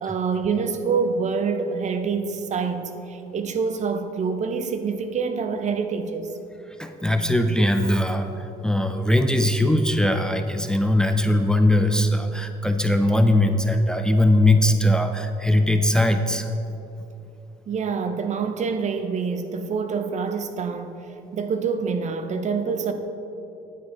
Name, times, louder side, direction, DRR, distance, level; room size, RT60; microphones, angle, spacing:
voice 1, 0.0-6.3 17.7-21.0 21.3-22.9, right 5 dB, 45° right, 0.7 m, -26 dB
voice 2, 6.8-16.5, left 1 dB, 5° left, 0.5 m, -20 dB
9.6 x 8.8 x 3.9 m
cardioid pair, 110°, 17 cm